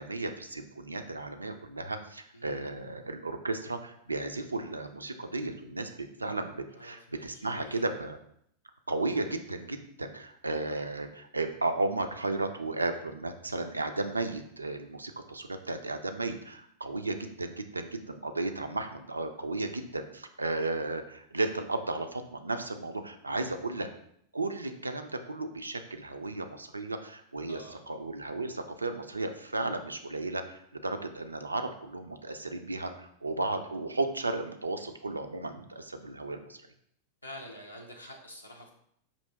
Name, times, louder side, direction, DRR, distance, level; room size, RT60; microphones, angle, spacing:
voice 1, 0.0-8.2 8.9-23.9 24.3-36.6, right 2 dB, 80° right, 7 dB, 0.4 m, -34 dB
voice 2, 2.3-2.7 6.7-7.9 27.5-27.8 37.2-38.7, equal, 85° left, 0 dB, 0.6 m, -47 dB
5.2 x 2.8 x 3.3 m, 0.70 s
figure-of-eight pair, 90°, 0 cm